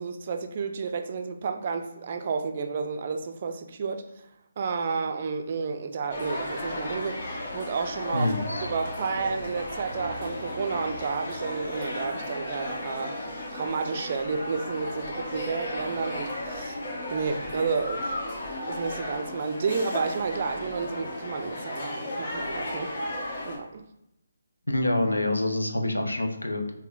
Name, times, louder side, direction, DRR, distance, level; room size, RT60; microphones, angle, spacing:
voice 1, 0.0-4.1 4.6-8.3 8.6-13.2 13.5-16.8 17.1-18.2 18.7-22.9 23.4-23.9, right 5 dB, 40° right, 6 dB, 0.3 m, -31 dB
sound 1, 6.1-23.6, left 1 dB, 45° left, 0.8 m, -34 dB
voice 2, 8.1-8.7 24.7-26.7, left 1 dB, 90° left, 3 dB, 0.5 m, -26 dB
3.5 x 2.1 x 2.5 m, 0.82 s
figure-of-eight pair, 145°, 0 cm